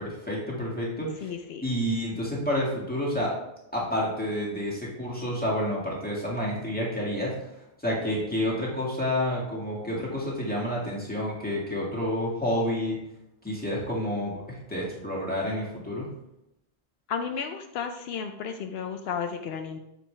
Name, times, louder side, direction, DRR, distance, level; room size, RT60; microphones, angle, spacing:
voice 1, 0.0-1.3 1.6-3.3 3.7-7.3 7.8-13.0 13.4-16.1, equal, 10° left, -5 dB, 1.8 m, -29 dB
voice 2, 1.2-1.6 17.1-19.8, left 6 dB, 80° left, 5 dB, 0.8 m, -33 dB
6.7 x 5.2 x 3.2 m, 0.86 s
omnidirectional pair, 1.0 m